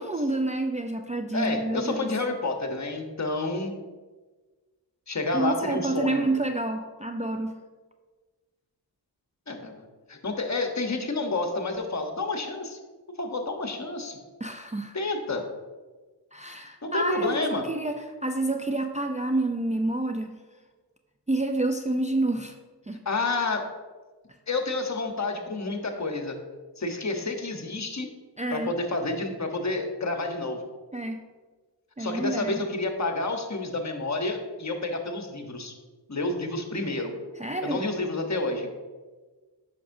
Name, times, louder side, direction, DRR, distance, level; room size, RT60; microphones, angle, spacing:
voice 1, 0.0-2.1 5.3-7.6 14.4-15.0 16.3-17.9 18.2-20.4 21.3-22.5 22.9-23.0 28.4-28.7 30.9-31.2 32.0-32.6 37.4-37.8, right 2 dB, 15° right, 4 dB, 0.4 m, -28 dB
voice 2, 1.3-3.7 5.1-6.3 9.5-9.8 10.1-12.8 13.2-14.2 14.9-15.4 16.8-17.6 23.0-23.6 24.5-26.4 26.8-28.1 28.5-30.6 32.0-35.7 36.1-37.1 37.6-38.7, left 3 dB, 40° left, 4 dB, 1.1 m, -29 dB
8.2 x 6.0 x 2.7 m, 1.3 s
cardioid pair, 50°, 44 cm